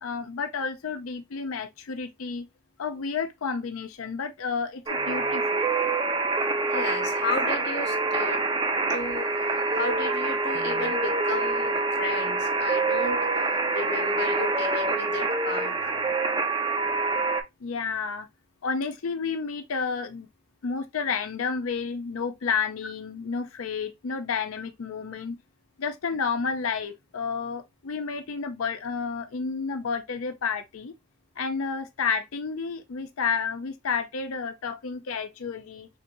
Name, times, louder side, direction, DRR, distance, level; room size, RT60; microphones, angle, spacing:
voice 1, 0.0-2.5 2.8-5.7 17.6-18.3 18.6-20.3 20.6-25.4 25.8-30.9 31.4-35.9, left 5 dB, 90° left, 0.5 m, -31 dB
sound 1, 4.9-17.4, right 3 dB, 20° right, 0.3 m, -26 dB
voice 2, 6.7-8.4 8.9-9.5 9.7-13.4 13.7-15.8, left 3 dB, 50° left, 0.8 m, -33 dB
3.6 x 2.6 x 2.8 m
head